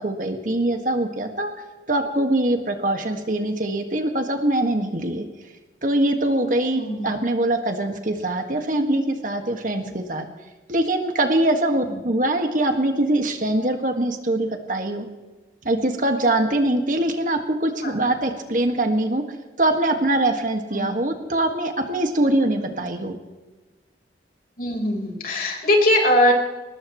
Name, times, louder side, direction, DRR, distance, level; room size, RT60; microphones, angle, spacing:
voice 1, 0.0-1.5 1.9-5.2 5.8-10.3 10.7-15.1 15.6-19.2 19.6-23.2, right 1 dB, 45° right, 5 dB, 1.8 m, -23 dB
voice 2, 6.7-7.1 9.8-9.9 11.9-12.0 17.8-17.9 20.7-20.9 22.7-22.8 24.6-26.3, left 1 dB, 50° left, 1 dB, 4.3 m, -21 dB
22.5 x 19.5 x 3.1 m, 1.2 s
head